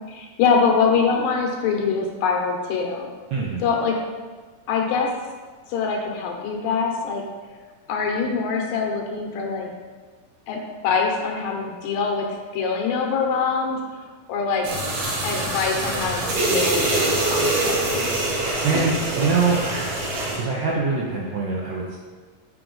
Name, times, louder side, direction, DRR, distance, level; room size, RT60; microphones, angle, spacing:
voice 1, 0.1-3.1 3.6-4.0 4.7-5.1 5.7-7.2 7.9-9.7 10.5-12.3 12.5-14.7 15.2-18.2, left 5 dB, 75° left, 1 dB, 2.3 m, -24 dB
voice 2, 3.3-3.6 18.6-20.0 20.4-22.0, right 4 dB, 75° right, -4 dB, 1.7 m, -24 dB
sound 1, 14.6-20.4, right 2 dB, 55° right, 1.9 m, -24 dB
7.6 x 5.0 x 3.9 m, 1.4 s
omnidirectional pair, 4.1 m